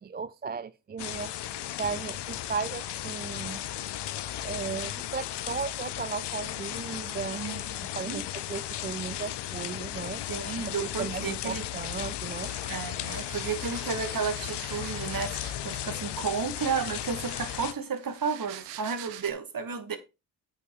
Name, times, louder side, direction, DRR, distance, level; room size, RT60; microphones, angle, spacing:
voice 1, 0.0-1.3 1.8-3.6 4.4-7.4 8.0-10.2 10.8-12.5, right 5 dB, 20° right, 0.5 m, -35 dB
sound 1, 1.0-17.7, left 12 dB, 55° left, 0.8 m, -35 dB
voice 2, 7.3-7.8 8.1-8.2 10.3-11.6 12.7-20.0, right 6 dB, 40° right, 2.2 m, -32 dB
Scrubbing Table, 12.2-15.7 16.5-19.3, right 12 dB, 85° right, 1.0 m, -46 dB
8.7 x 5.9 x 5.0 m
hypercardioid pair, 50°, 49 cm